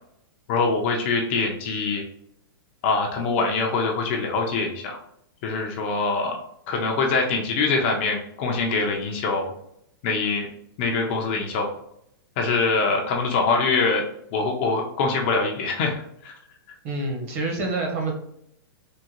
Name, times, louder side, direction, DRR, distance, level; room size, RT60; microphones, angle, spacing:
voice 1, 0.5-2.0 2.8-5.0 5.4-6.4 6.7-9.5 10.0-10.5 10.8-11.7 12.4-14.0 14.3-16.3, left 4 dB, 30° left, 1 dB, 0.4 m, -24 dB
voice 2, 16.8-18.1, right 2 dB, 40° right, 1 dB, 0.9 m, -27 dB
3.6 x 2.1 x 2.8 m, 0.74 s
hypercardioid pair, 170°, 12 cm